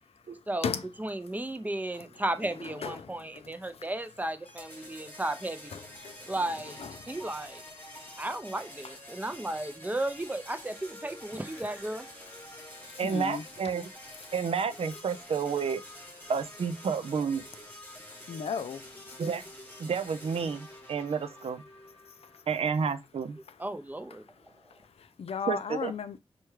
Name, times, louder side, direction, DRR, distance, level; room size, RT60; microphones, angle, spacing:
voice 1, 1.0-5.8 6.3-7.6 8.2-12.1 23.6-24.2, right 1 dB, 15° right, 0.5 m, -34 dB
voice 2, 2.4-3.9 4.8-5.2 5.7-6.4 6.6-7.4 7.7-8.3 8.8-9.2 12.2-13.7 14.2-14.3 18.1-19.3 22.0-22.4 24.7-26.2, left 6 dB, 85° left, 0.4 m, -39 dB
sound 1, 4.5-22.4, equal, 20° left, 1.0 m, -48 dB
voice 3, 13.0-13.9 14.3-15.8 16.3-17.4 19.2-19.4 19.8-21.6 22.5-23.4 25.5-25.9, right 6 dB, 80° right, 0.4 m, -30 dB
4.3 x 2.3 x 3.1 m
wide cardioid pair, 65°, 10 cm